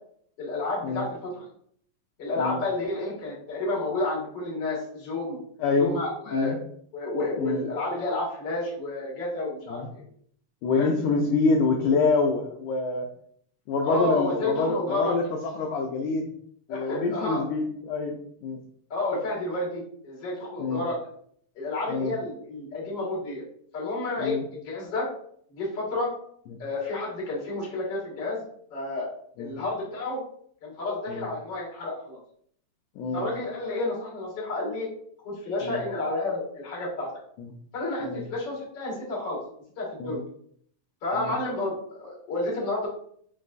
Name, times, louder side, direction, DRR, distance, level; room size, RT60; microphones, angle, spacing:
voice 1, 0.4-1.4 2.2-5.4 5.8-6.6 6.9-10.0 10.8-10.9 13.8-15.1 16.7-17.5 18.9-21.0 21.5-23.4 23.7-25.1 25.5-26.1 26.6-28.4 28.7-29.1 29.4-30.2 30.6-32.2 33.1-34.9 35.2-37.1 37.7-39.4 39.8-40.2 41.0-41.7 42.0-42.9, left 2 dB, 45° left, -5 dB, 1.5 m, -30 dB
voice 2, 5.6-5.9 6.3-6.6 7.4-7.6 9.7-9.9 10.6-13.1 13.7-16.3 16.7-18.6 20.6-20.8 21.9-22.1 24.2-24.4 29.4-29.6 31.1-31.2 33.0-33.3 35.6-35.8 37.4-37.5 38.1-38.3 40.0-40.2 41.1-41.4, left 3 dB, 85° left, 2 dB, 1.8 m, -26 dB
5.3 x 3.1 x 2.4 m, 0.64 s
omnidirectional pair, 3.9 m